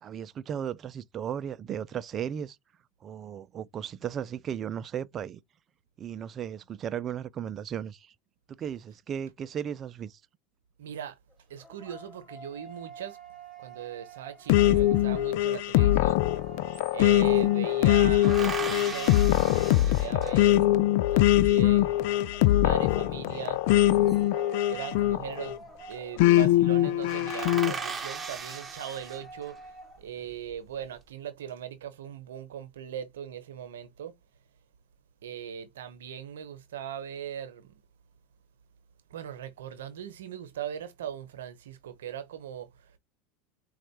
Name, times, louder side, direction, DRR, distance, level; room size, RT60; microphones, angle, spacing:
voice 1, 0.0-2.6 3.0-5.4 6.0-8.1 8.6-10.2, right 9 dB, 35° right, 0.5 m, -35 dB
voice 2, 10.8-11.2 11.5-13.2 13.6-16.2 16.9-20.8 21.1-22.2 22.6-23.6 24.7-29.7 30.0-34.1 35.2-37.7 39.1-42.9, right 9 dB, 80° right, 0.8 m, -39 dB
sound 1, 11.3-20.0 22.3-30.1, right 6 dB, 5° left, 2.1 m, -47 dB
sound 2, 14.5-25.6 26.2-27.7, left 14 dB, 65° left, 0.3 m, -22 dB
sound 3, 16.1-16.2 16.4-17.5 18.2-20.7 23.4-24.4 25.5-25.9 26.2-26.4 26.7-26.8 27.1-29.6 30.2-30.8, right 5 dB, 20° right, 0.9 m, -39 dB
4.3 x 2.4 x 4.2 m
hypercardioid pair, 90°, 0 cm